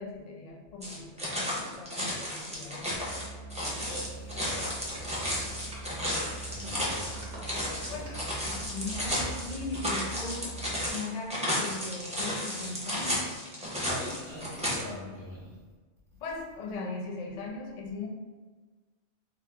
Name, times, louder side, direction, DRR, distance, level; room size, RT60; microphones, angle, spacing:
voice 1, 0.0-2.8 7.8-13.4 16.2-18.1, left 3 dB, 55° left, 0 dB, 0.4 m, -39 dB
sound 1, 0.8-14.8, left 1 dB, 10° right, 0.3 m, -33 dB
Musical instrument, 2.9-10.9, right 3 dB, 85° left, 0.9 m, -43 dB
voice 2, 3.7-4.7 5.0-5.4 6.5-7.0 7.8-8.0 13.8-15.5, left 1 dB, 50° right, -7 dB, 1.0 m, -43 dB
sound 2, 4.5-10.5, right 1 dB, 75° right, 1.2 m, -47 dB
2.9 x 2.0 x 3.3 m, 1.3 s
omnidirectional pair, 1.2 m